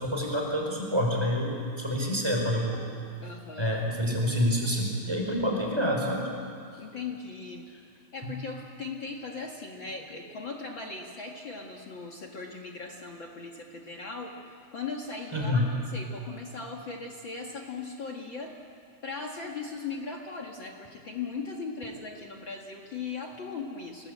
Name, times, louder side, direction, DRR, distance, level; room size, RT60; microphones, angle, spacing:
voice 1, 0.0-2.9 3.6-6.3 8.2-8.3 15.3-15.7, equal, 5° right, -1 dB, 5.0 m, -27 dB
voice 2, 3.2-3.8 4.1-4.2 4.4-4.5 6.8-7.6 8.1-15.6 15.9-18.5 19.0-24.1, left 4 dB, 50° left, 3 dB, 1.5 m, -38 dB
28.0 x 19.5 x 8.6 m, 2.4 s
omnidirectional pair, 4.6 m